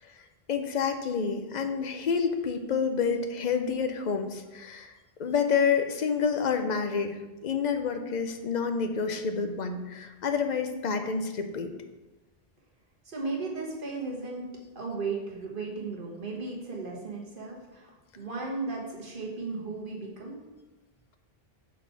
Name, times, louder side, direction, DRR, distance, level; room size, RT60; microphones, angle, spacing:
voice 1, 0.5-4.9 5.2-11.7, left 6 dB, 50° left, 7 dB, 0.7 m, -28 dB
voice 2, 13.0-14.5 14.7-20.4, right 3 dB, 60° right, -2 dB, 1.5 m, -35 dB
5.9 x 4.2 x 5.7 m, 1.1 s
omnidirectional pair, 1.0 m